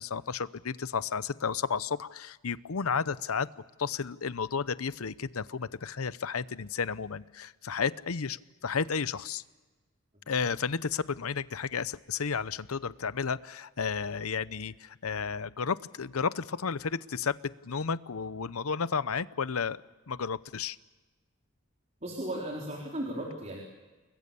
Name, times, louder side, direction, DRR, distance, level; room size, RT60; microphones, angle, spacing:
voice 1, 0.0-3.5 3.8-9.4 10.3-19.8 20.1-20.8, left 6 dB, 90° left, 16 dB, 0.8 m, -32 dB
voice 2, 22.0-23.6, right 1 dB, 35° right, -2 dB, 4.0 m, -36 dB
29.5 x 22.0 x 7.0 m, 1.2 s
head